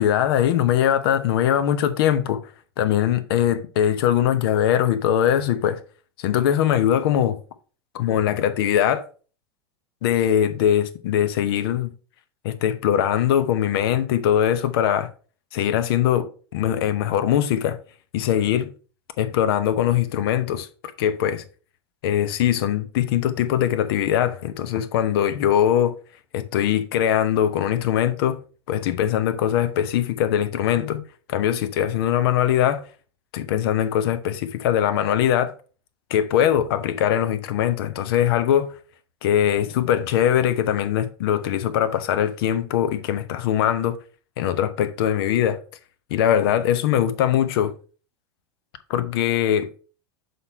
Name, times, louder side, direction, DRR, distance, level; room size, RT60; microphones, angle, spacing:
voice 1, 0.0-2.4 2.8-5.8 6.2-7.4 7.9-9.0 10.0-11.9 12.4-15.1 15.5-17.8 18.1-18.7 19.2-20.7 21.0-21.4 22.0-25.9 26.3-28.4 28.7-31.0 31.3-32.8 33.3-35.5 36.1-38.7 39.2-44.0 44.4-45.6 46.1-47.7 48.9-49.7, left 10 dB, 60° left, 0.8 m, -21 dB
6.6 x 4.4 x 4.4 m
figure-of-eight pair, 90°, 14 cm